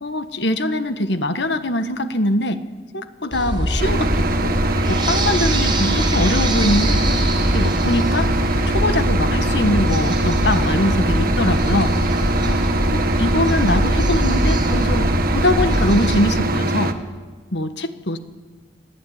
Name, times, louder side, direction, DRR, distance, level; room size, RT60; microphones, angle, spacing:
voice 1, 0.0-2.6 2.9-4.5 4.9-7.2 7.5-8.3 8.7-11.9 12.4-12.6 12.9-16.9 17.5-18.2, left 1 dB, 65° left, 9 dB, 1.5 m, -22 dB
sound 1, 3.3-16.2, equal, 25° right, 4.4 m, -22 dB
sound 2, 3.8-16.9, right 1 dB, 50° right, 1.5 m, -22 dB
sound 3, 6.7-15.8, equal, 5° left, 3.0 m, -34 dB
25.0 x 17.5 x 9.6 m, 1.4 s
head